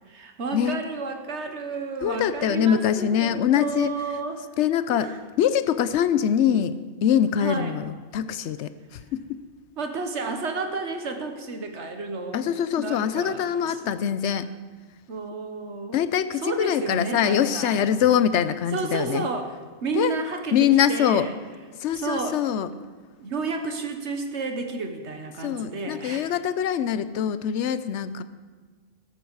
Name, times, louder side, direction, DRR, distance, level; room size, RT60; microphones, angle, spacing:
voice 1, 0.1-4.4 4.9-5.2 7.4-7.7 9.8-12.5 12.8-13.9 15.1-16.0 16.4-17.8 18.7-21.3 21.9-22.4 23.2-26.3, right 4 dB, 80° right, 5 dB, 1.6 m, -31 dB
voice 2, 2.0-3.9 4.6-9.4 12.3-14.5 15.9-19.3 19.9-20.1 20.5-21.3 21.8-22.7 25.4-28.2, left 9 dB, 85° left, 13 dB, 0.9 m, -23 dB
13.5 x 12.5 x 4.8 m, 1.5 s
omnidirectional pair, 1.1 m